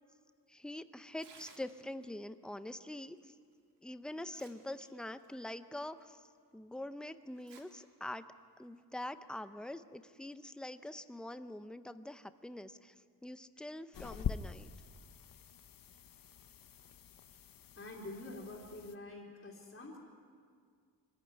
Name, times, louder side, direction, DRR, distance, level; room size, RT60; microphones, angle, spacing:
voice 1, 0.5-3.4 3.8-6.2 6.5-8.2 8.6-14.7, left 1 dB, ahead, 11 dB, 0.6 m, -45 dB
Tearing, 1.1-2.1 3.5-3.6 4.1-4.8 5.2-5.3 6.0-6.1 7.3-7.6 8.0-8.1 9.0-9.2, right 5 dB, 75° right, 2.6 m, -58 dB
sound 1, 13.9-18.9, left 8 dB, 55° left, 0.8 m, -44 dB
voice 2, 17.8-20.0, left 2 dB, 30° left, -4 dB, 3.2 m, -47 dB
25.5 x 15.0 x 9.8 m, 2.1 s
wide cardioid pair, 165°, 41 cm